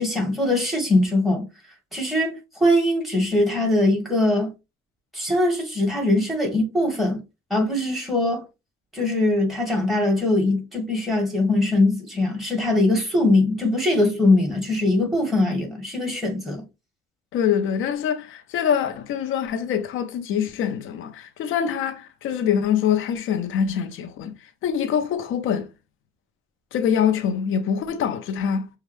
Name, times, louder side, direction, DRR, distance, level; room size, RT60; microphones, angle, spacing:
voice 1, 0.0-1.5 1.9-4.5 5.1-7.2 7.5-8.5 8.9-16.6, left 1 dB, ahead, 2.2 m, -21 dB
voice 2, 17.3-24.3 24.6-25.7 26.7-28.7, left 8 dB, 85° left, 0.9 m, -24 dB
6.4 x 2.4 x 3.3 m
cardioid pair, 90°, 20 cm